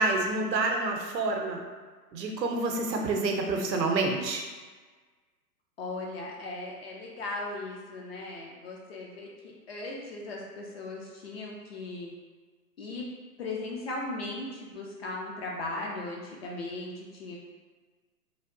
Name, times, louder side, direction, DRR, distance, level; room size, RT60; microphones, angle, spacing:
voice 1, 0.0-1.6 2.1-4.4, right 3 dB, 80° right, 2 dB, 0.7 m, -28 dB
voice 2, 5.8-12.1 12.8-13.0 13.4-17.4, left 2 dB, 40° left, -2 dB, 0.5 m, -37 dB
3.3 x 2.2 x 2.5 m, 1.4 s
hypercardioid pair, 120°, 50 cm